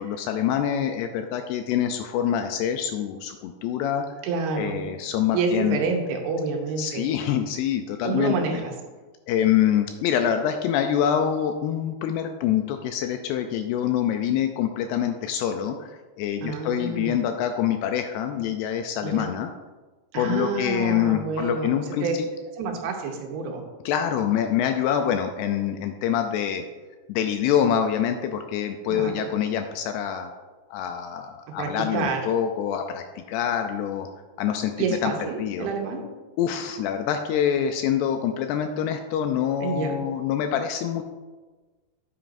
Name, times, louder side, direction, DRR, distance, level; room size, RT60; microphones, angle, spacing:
voice 1, 0.0-4.1 4.6-5.8 6.8-8.3 9.3-19.5 20.2-22.3 23.9-26.6 27.1-30.3 30.7-34.1 34.4-34.7 35.0-35.1 35.4-35.7 36.4-41.0, left 9 dB, 80° left, 6 dB, 2.5 m, -25 dB
voice 2, 4.2-4.9 5.3-7.1 8.0-8.7 16.4-17.2 19.0-19.3 20.1-22.2 22.6-23.7 28.9-29.1 31.6-32.2 34.8-36.0 39.6-40.0, right 4 dB, 75° right, 2 dB, 2.6 m, -28 dB
9.0 x 8.8 x 2.6 m, 1.3 s
omnidirectional pair, 4.9 m